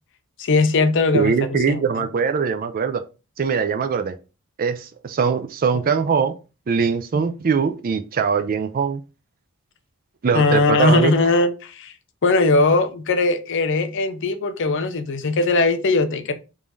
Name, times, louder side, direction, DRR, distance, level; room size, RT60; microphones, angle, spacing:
voice 1, 0.4-1.3 1.7-2.0 10.3-11.9 12.2-16.3, left 3 dB, 60° left, 0.6 m, -19 dB
voice 2, 1.1-3.0 3.4-4.1 4.6-6.3 6.7-9.0 10.2-11.1, right 6 dB, 40° right, 0.4 m, -21 dB
3.6 x 2.7 x 4.6 m
head